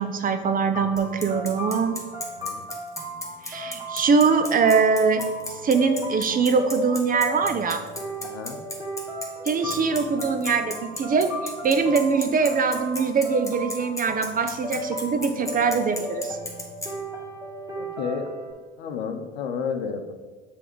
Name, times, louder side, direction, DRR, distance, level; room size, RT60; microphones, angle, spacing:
voice 1, 0.0-2.0 3.4-5.2 5.6-7.8 9.5-16.4, right 5 dB, 25° right, 8 dB, 0.6 m, -22 dB
sound 1, 0.7-18.5, equal, 10° right, 1.5 m, -36 dB
Bicycle, 1.0-16.9, left 2 dB, 10° left, 1.3 m, -34 dB
voice 2, 8.2-8.6 17.7-20.1, left 6 dB, 70° left, 6 dB, 0.8 m, -32 dB
6.9 x 3.6 x 4.5 m, 1.4 s
hypercardioid pair, 70°, 32 cm